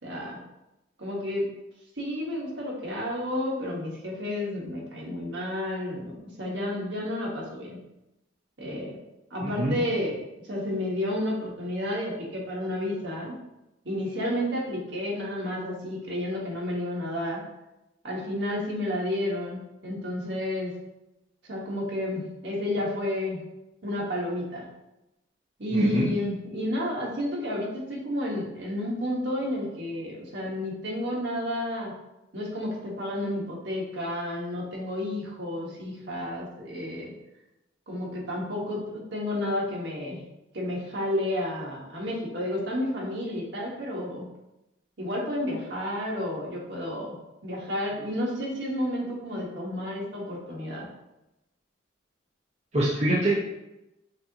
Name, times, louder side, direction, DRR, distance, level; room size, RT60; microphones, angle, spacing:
voice 1, 0.0-0.4 1.0-1.4 2.0-7.8 8.6-9.0 9.3-10.2 10.5-13.4 13.8-17.4 18.0-20.7 21.4-23.4 23.8-24.6 25.6-31.9 32.3-37.1 37.9-40.2 40.5-44.2 45.0-47.2 47.4-50.9, left 1 dB, 65° right, -3 dB, 1.4 m, -31 dB
voice 2, 9.4-9.8 25.7-26.1 52.7-53.3, right 1 dB, 35° right, -6 dB, 0.8 m, -24 dB
6.7 x 2.6 x 2.9 m, 0.93 s
head